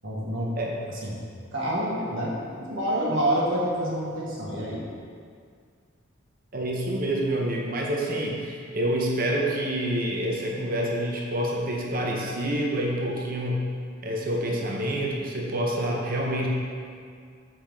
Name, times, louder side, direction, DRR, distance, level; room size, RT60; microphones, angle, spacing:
voice 1, 0.0-0.5 1.0-1.1 1.5-4.8, right 1 dB, 70° right, -5 dB, 1.6 m, -27 dB
voice 2, 6.5-13.7 14.0-16.5, right 1 dB, 45° right, -1 dB, 0.7 m, -27 dB
6.9 x 5.6 x 3.5 m, 2.1 s
head